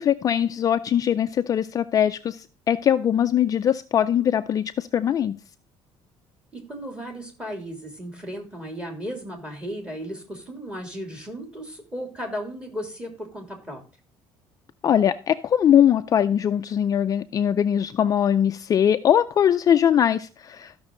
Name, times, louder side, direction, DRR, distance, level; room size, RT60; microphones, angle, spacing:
voice 1, 0.0-5.4 14.8-20.7, left 9 dB, 35° left, 9 dB, 0.4 m, -21 dB
voice 2, 6.5-13.8, equal, 10° right, 3 dB, 2.9 m, -35 dB
14.0 x 6.0 x 3.8 m, 0.35 s
cardioid pair, 145°, 10 cm